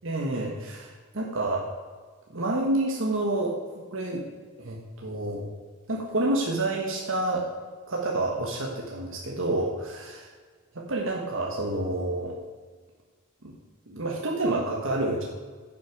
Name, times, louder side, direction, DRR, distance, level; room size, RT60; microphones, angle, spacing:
voice 1, 0.0-1.7 2.3-3.6 3.9-4.2 4.6-5.5 5.9-7.5 7.9-10.3 10.7-12.3 13.4-13.5 13.9-15.2, right 2 dB, 65° right, -1 dB, 1.4 m, -28 dB
10.0 x 7.6 x 4.8 m, 1.5 s
head